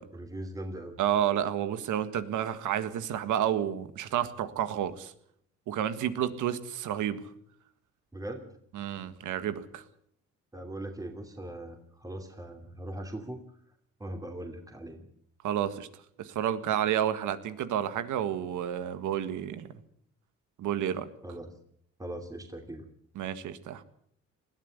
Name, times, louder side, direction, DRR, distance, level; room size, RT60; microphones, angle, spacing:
voice 1, 0.0-0.9 8.1-8.6 10.5-13.4 14.0-15.1 21.2-21.6 22.0-22.9, right 1 dB, 10° right, 4 dB, 2.7 m, -40 dB
voice 2, 1.0-5.1 5.7-7.2 8.7-9.8 15.4-15.9 16.2-19.7 20.6-21.1 23.2-23.8, right 10 dB, 80° right, 12 dB, 1.7 m, -30 dB
20.0 x 13.5 x 9.7 m, 0.68 s
cardioid pair, 90°, 30 cm